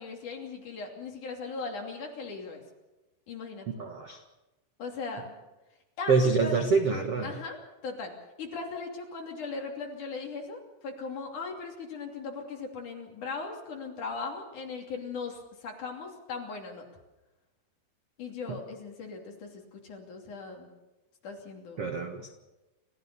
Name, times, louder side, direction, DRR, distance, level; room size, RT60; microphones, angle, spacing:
voice 1, 0.0-2.6 3.3-3.7 4.8-5.3 6.0-6.6 7.2-7.6 7.8-8.1 8.4-16.8 18.2-20.7 21.2-22.0, left 4 dB, 45° left, 1 dB, 3.9 m, -38 dB
voice 2, 3.8-4.2 6.1-7.3 21.8-22.3, right 4 dB, 75° right, 4 dB, 1.3 m, -26 dB
29.5 x 15.0 x 6.9 m, 1.0 s
omnidirectional pair, 5.4 m